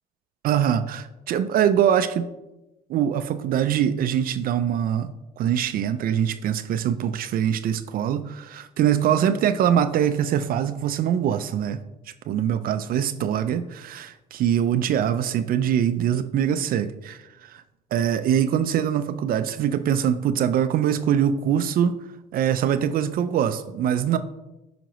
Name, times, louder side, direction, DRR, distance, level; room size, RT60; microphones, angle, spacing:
voice 1, 0.4-2.3 2.9-11.8 12.1-17.6 17.9-22.0 22.3-24.2, right 9 dB, 60° right, 10 dB, 0.4 m, -23 dB
9.2 x 5.1 x 3.0 m, 0.98 s
cardioid pair, 110°, 17 cm